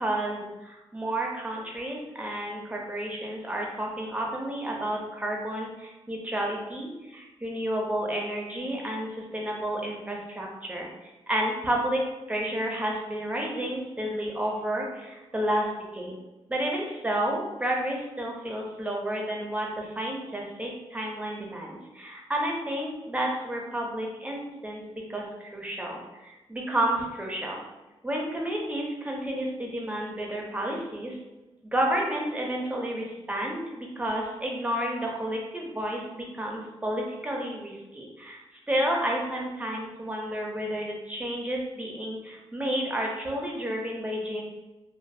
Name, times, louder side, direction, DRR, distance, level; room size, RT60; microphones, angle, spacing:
voice 1, 0.0-16.2 16.5-27.6 28.0-31.2 31.6-38.4 38.7-44.4, right 1 dB, 15° right, -1 dB, 0.6 m, -31 dB
2.5 x 2.3 x 2.6 m, 1.0 s
cardioid pair, 95°, 11 cm